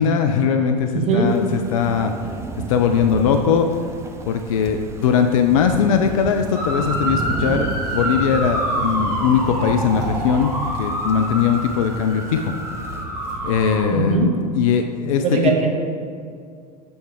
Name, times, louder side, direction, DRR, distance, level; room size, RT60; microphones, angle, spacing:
voice 1, 0.0-2.1 2.7-3.7 4.3-10.5 10.8-12.5 13.4-15.4, left 7 dB, 55° left, 6 dB, 0.4 m, -20 dB
voice 2, 0.9-1.3 13.9-14.3 15.2-15.7, right 4 dB, 30° right, 0 dB, 1.1 m, -19 dB
Thunder / Rain, 1.2-13.0, right 4 dB, 15° right, 0.4 m, -34 dB
sound 1, 6.5-13.9, right 1 dB, 75° right, 1.4 m, -26 dB
7.7 x 3.3 x 4.6 m, 2.3 s
figure-of-eight pair, 80°, 20 cm